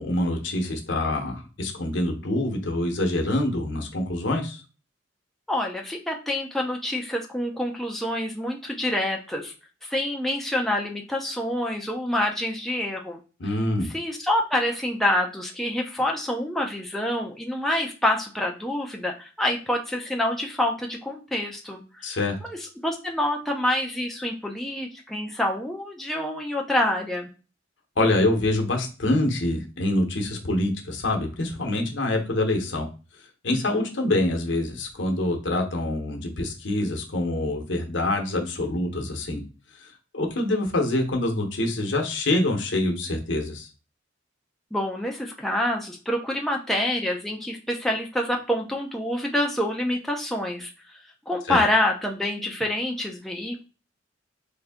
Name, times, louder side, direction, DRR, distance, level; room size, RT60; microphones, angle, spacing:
voice 1, 0.0-4.6 13.4-13.9 22.0-22.4 28.0-32.9 33.4-39.4 39.8-39.9 40.1-43.7 51.5-51.6, left 1 dB, 70° left, 2 dB, 0.9 m, -25 dB
voice 2, 5.5-9.5 9.8-13.2 13.9-22.2 22.6-27.3 33.5-33.8 44.7-50.7 51.3-53.6, left 1 dB, ahead, 0 dB, 0.4 m, -27 dB
3.4 x 2.6 x 3.5 m, 0.35 s
head